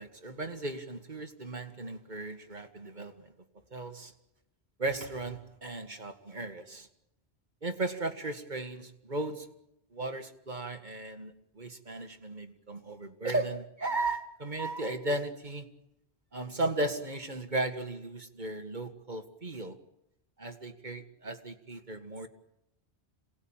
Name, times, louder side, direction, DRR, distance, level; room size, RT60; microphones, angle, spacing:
voice 1, 0.0-3.3 3.7-4.1 4.8-6.9 7.6-9.5 9.9-15.7 16.3-19.8 20.4-22.3, right 2 dB, 45° right, 7 dB, 1.9 m, -36 dB
27.0 x 19.0 x 8.9 m, 0.84 s
omnidirectional pair, 1.1 m